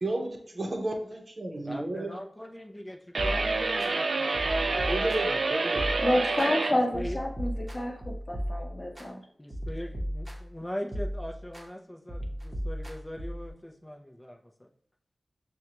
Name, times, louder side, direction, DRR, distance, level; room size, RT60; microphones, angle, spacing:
voice 1, 0.0-2.1 4.9-5.9, right 1 dB, 50° right, 1 dB, 0.8 m, -32 dB
voice 2, 1.6-5.0 6.7-7.2 9.4-14.7, equal, 15° left, 1 dB, 0.6 m, -40 dB
sound 1, 3.1-6.8, right 3 dB, 75° right, 0.3 m, -28 dB
sound 2, 3.2-3.9 4.3-5.4 5.8-6.5 6.9-9.1 9.5-10.6 10.9-11.7 12.1-13.5, equal, 25° right, 0.9 m, -36 dB
voice 3, 5.7-9.2, left 1 dB, 40° left, 2 dB, 0.9 m, -29 dB
6.2 x 2.3 x 2.9 m, 0.62 s
cardioid pair, 45°, 0 cm